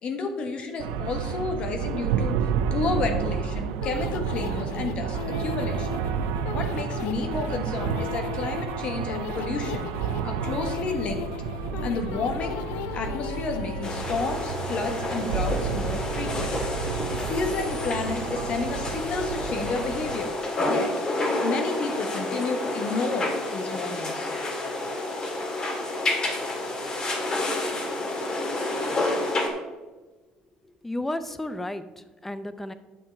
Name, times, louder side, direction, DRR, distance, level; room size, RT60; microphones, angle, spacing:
voice 1, 0.0-6.0 6.5-9.9 10.2-11.3 11.8-12.6 12.9-16.6 17.1-20.4 20.6-20.9 21.4-24.3 29.0-29.2, left 3 dB, 50° left, 5 dB, 1.3 m, -31 dB
sound 1, 0.8-20.2, right 7 dB, 90° right, 0.5 m, -31 dB
sound 2, 3.8-14.4, left 13 dB, 80° left, 0.3 m, -37 dB
sound 3, 13.8-29.5, left 2 dB, 35° left, 1.9 m, -29 dB
voice 2, 30.6-32.7, left 1 dB, 10° left, 11 dB, 0.7 m, -33 dB
9.2 x 6.1 x 4.6 m, 1.2 s
supercardioid pair, 95°, 2 cm